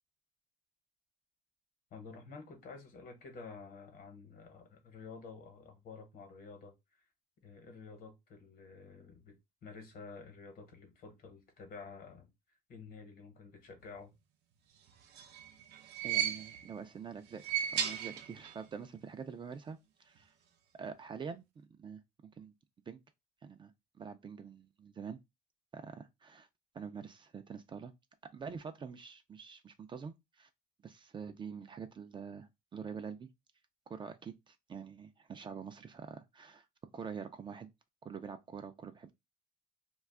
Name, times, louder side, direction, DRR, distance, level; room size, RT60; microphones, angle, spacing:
voice 1, 1.9-7.1 7.4-12.3 12.7-14.1, left 4 dB, 60° left, 1.0 m, -51 dB
sound 1, 14.9-16.8 17.3-18.7 18.9-19.0 20.2-20.3, right 10 dB, 80° right, 0.5 m, -36 dB
voice 2, 16.0-20.3 20.8-21.4 21.8-22.0 22.4-22.5 22.9-23.0 23.4-23.7 24.0-25.2 25.7-26.5 26.7-27.9 28.3-30.5 30.8-33.3 33.9-36.7 36.9-37.7 38.0-39.1, right 6 dB, 30° right, 0.3 m, -45 dB
2.4 x 2.3 x 3.5 m
cardioid pair, 110°, 17 cm